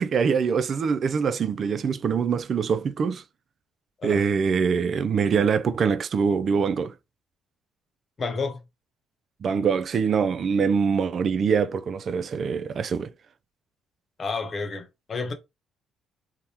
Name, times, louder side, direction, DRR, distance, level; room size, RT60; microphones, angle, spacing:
voice 1, 0.0-3.2 4.0-6.9 9.4-13.1, right 6 dB, 55° right, 0.3 m, -24 dB
voice 2, 8.2-8.6 14.2-15.3, left 4 dB, 45° left, 0.9 m, -30 dB
3.4 x 2.1 x 2.8 m
supercardioid pair, 70°, 0 cm